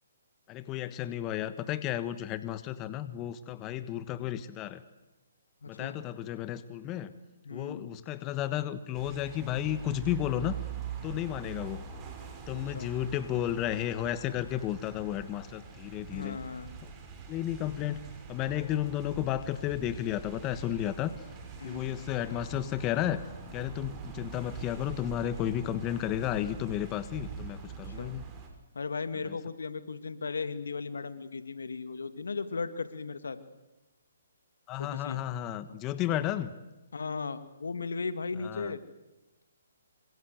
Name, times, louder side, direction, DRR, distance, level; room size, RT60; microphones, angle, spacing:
voice 1, 0.5-4.8 5.7-7.1 7.5-10.6 11.0-11.8 12.5-16.4 17.3-18.0 18.3-21.1 21.6-23.2 23.5-28.2 29.3-29.4 34.7-36.5 38.4-38.7, left 12 dB, 25° left, 14 dB, 1.3 m, -33 dB
voice 2, 5.6-6.0 7.4-7.9 12.5-12.9 16.1-16.7 21.6-22.0 27.8-28.2 28.7-33.4 34.8-35.2 36.9-38.8, left 4 dB, 80° left, 12 dB, 2.2 m, -36 dB
sound 1, 8.9-28.5, right 6 dB, 20° right, 6.2 m, -44 dB
26.5 x 26.0 x 8.1 m, 1.1 s
hypercardioid pair, 145°, 0 cm